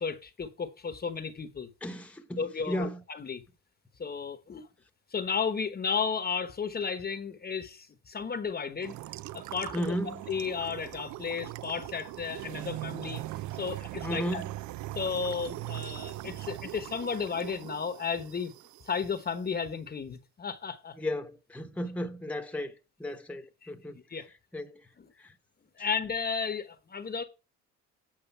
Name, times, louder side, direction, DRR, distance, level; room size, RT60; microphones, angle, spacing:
voice 1, 0.0-1.7 2.4-3.4 4.0-4.7 5.1-8.9 9.3-13.2 13.5-14.4 14.9-18.5 18.9-20.9 23.6-23.7 24.1-24.3 25.8-27.2, left 6 dB, 30° left, 1.0 m, -33 dB
voice 2, 1.8-2.4 2.7-3.0 9.7-10.2 14.0-14.5 21.0-24.0 24.5-24.9 25.2-25.3, equal, 5° left, 1.0 m, -34 dB
sound 1, 8.8-19.2, right 16 dB, 70° right, 0.5 m, -40 dB
9.0 x 5.1 x 5.6 m
cardioid pair, 90°, 31 cm